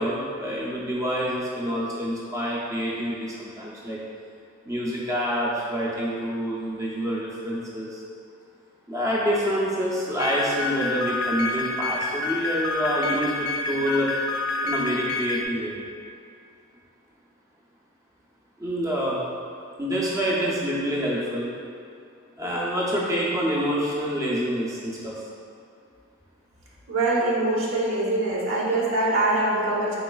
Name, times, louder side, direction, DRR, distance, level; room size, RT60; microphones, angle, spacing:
voice 1, 0.0-4.0 4.7-8.0 8.9-14.1 14.6-15.8 18.6-19.2 19.8-21.5 22.4-25.1, equal, 15° right, -5 dB, 0.4 m, -27 dB
sound 1, 10.2-15.5, left 3 dB, 80° left, 0.3 m, -28 dB
voice 2, 26.9-30.0, right 2 dB, 85° right, -6 dB, 0.9 m, -23 dB
3.9 x 3.8 x 2.2 m, 2.4 s
head